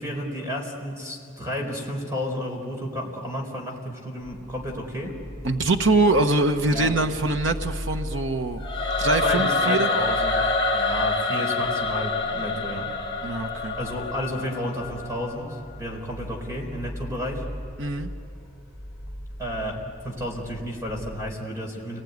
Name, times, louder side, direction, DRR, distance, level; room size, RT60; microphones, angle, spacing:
voice 1, 0.0-5.1 6.7-6.9 9.2-13.0 13.8-17.4 19.4-22.0, equal, 15° right, 1 dB, 4.2 m, -32 dB
sound 1, 4.2-21.2, equal, 10° left, 5.2 m, -39 dB
voice 2, 5.4-8.6 9.0-9.9 13.2-13.8 17.8-18.1, right 2 dB, 80° right, 5 dB, 1.2 m, -23 dB
Singing / Musical instrument, 8.6-15.7, left 3 dB, 25° left, 1.4 m, -26 dB
29.0 x 21.0 x 9.5 m, 2.6 s
head